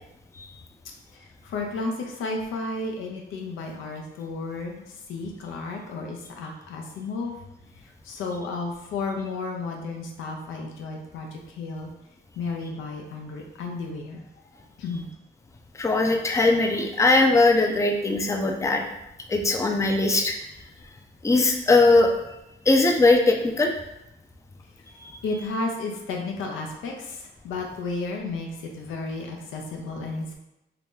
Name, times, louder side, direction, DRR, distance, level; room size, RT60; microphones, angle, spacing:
voice 1, 1.1-4.8 5.1-7.3 8.0-11.9 12.4-14.2 14.8-15.1 24.9-30.3, left 3 dB, 80° left, 2 dB, 0.7 m, -33 dB
voice 2, 15.7-18.8 19.3-20.4 21.2-22.1 22.7-23.7, left 2 dB, 15° left, 2 dB, 0.5 m, -20 dB
2.9 x 2.6 x 3.6 m, 0.88 s
cardioid pair, 90°, 20 cm